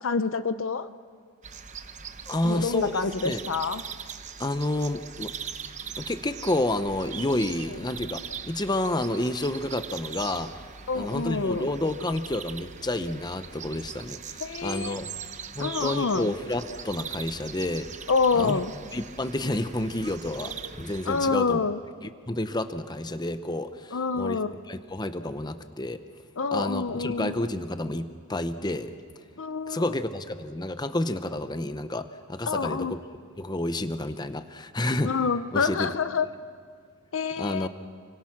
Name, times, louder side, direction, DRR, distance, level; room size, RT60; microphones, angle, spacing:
voice 1, 0.0-0.9 2.4-3.8 10.9-11.7 14.4-15.0 15.6-16.3 18.1-18.7 21.1-21.8 23.9-24.5 26.4-27.3 29.4-29.9 32.5-33.0 35.0-36.3 37.1-37.7, left 4 dB, 60° left, 12 dB, 0.6 m, -27 dB
sound 1, 1.4-21.3, right 7 dB, 30° right, 0.9 m, -41 dB
voice 2, 2.3-3.4 4.4-5.3 6.0-10.5 10.9-15.1 15.6-17.9 18.3-18.6 18.9-21.7 22.0-24.4 24.7-26.0 26.5-28.9 29.7-33.0 33.4-35.1 35.5-35.9 37.4-37.7, left 1 dB, 20° left, 10 dB, 0.8 m, -30 dB
29.5 x 23.5 x 6.0 m, 2.2 s
head